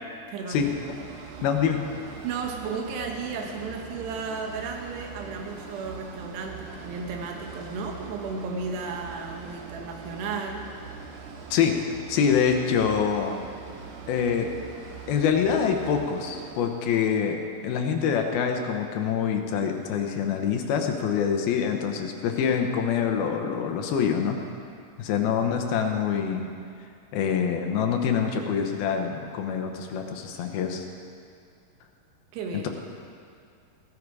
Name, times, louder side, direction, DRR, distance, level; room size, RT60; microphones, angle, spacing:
voice 1, 0.3-0.6 2.2-10.7 32.3-32.7, right 4 dB, 90° right, 2 dB, 3.5 m, -34 dB
sound 1, 0.5-16.5, right 5 dB, 75° right, 3.1 m, -42 dB
voice 2, 1.4-1.8 11.5-11.8 12.1-13.3 14.1-14.5 15.1-17.4 17.6-24.4 25.0-26.5 27.1-30.8, left 7 dB, 75° left, 4 dB, 2.7 m, -25 dB
16.0 x 14.0 x 4.8 m, 2.3 s
omnidirectional pair, 4.7 m